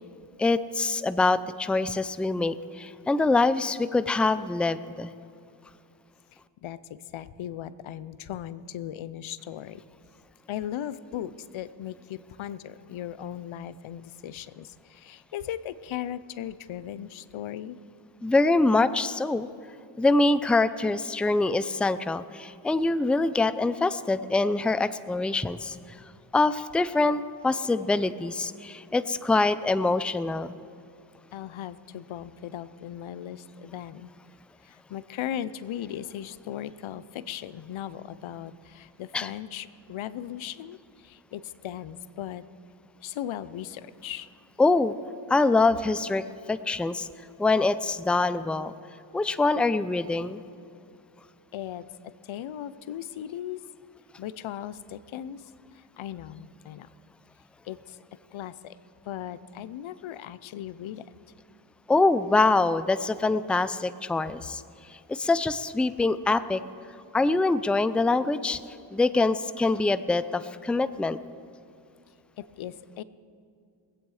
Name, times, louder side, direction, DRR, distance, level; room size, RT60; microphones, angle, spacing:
voice 1, 0.4-5.1 18.2-19.5 20.0-25.8 26.3-30.5 39.1-39.3 44.6-44.9 45.3-46.2 46.5-47.1 47.4-48.7 49.1-50.4 61.9-64.6 64.9-66.6 67.1-68.6 68.9-71.2, left 3 dB, ahead, 14 dB, 0.4 m, -24 dB
voice 2, 6.6-9.8 10.5-17.8 31.3-34.1 34.6-42.4 43.0-44.3 51.5-53.6 54.2-56.9 57.6-58.0 58.3-58.8 59.0-61.1 72.4-73.0, left 11 dB, 80° left, 16 dB, 0.6 m, -38 dB
22.0 x 8.4 x 4.8 m, 2.5 s
cardioid pair, 50°, 47 cm